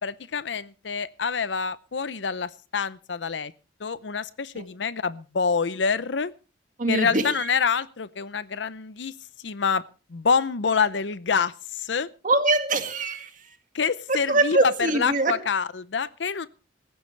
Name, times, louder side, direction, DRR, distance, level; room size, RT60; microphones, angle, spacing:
voice 1, 0.0-3.5 3.8-6.3 6.9-9.1 9.4-9.8 10.1-12.1 13.7-14.7 15.0-16.5, left 5 dB, 90° left, 0.7 m, -26 dB
voice 2, 6.8-7.5 12.2-13.6 14.1-15.4, right 2 dB, 45° right, 2.1 m, -24 dB
19.0 x 15.0 x 3.3 m
head